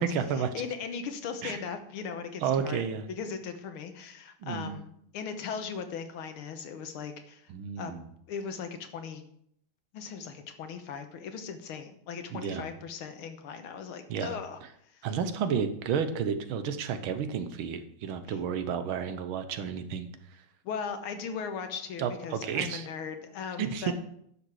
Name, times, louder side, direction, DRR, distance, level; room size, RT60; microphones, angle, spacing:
voice 1, 0.0-0.5 1.4-1.6 2.4-3.0 4.4-4.8 7.5-8.1 12.3-12.7 14.1-14.4 15.0-20.1 22.0-22.9 23.6-23.9, right 7 dB, 75° right, 9 dB, 1.7 m, -31 dB
voice 2, 0.5-2.8 3.2-7.5 7.8-7.9 8.3-9.2 9.9-14.6 14.9-15.0 18.3-18.4 20.6-23.9, left 6 dB, 90° left, 7 dB, 1.9 m, -38 dB
10.5 x 6.9 x 4.7 m, 0.70 s
omnidirectional pair, 2.3 m